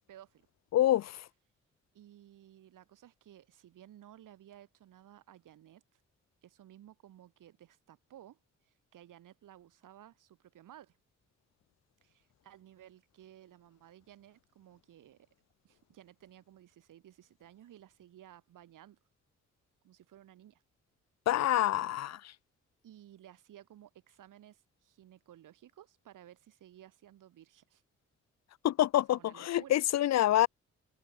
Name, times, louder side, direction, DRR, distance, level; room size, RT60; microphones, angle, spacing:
voice 1, 0.1-0.4 1.9-6.0 6.4-11.0 12.0-15.3 15.6-19.0 19.8-20.6 22.8-27.8 29.1-29.8, right 12 dB, 85° right, 6.2 m, -56 dB
voice 2, 0.7-1.2 21.3-22.2 28.6-30.5, left 13 dB, 60° left, 0.4 m, -27 dB
open air
supercardioid pair, 55°, 31 cm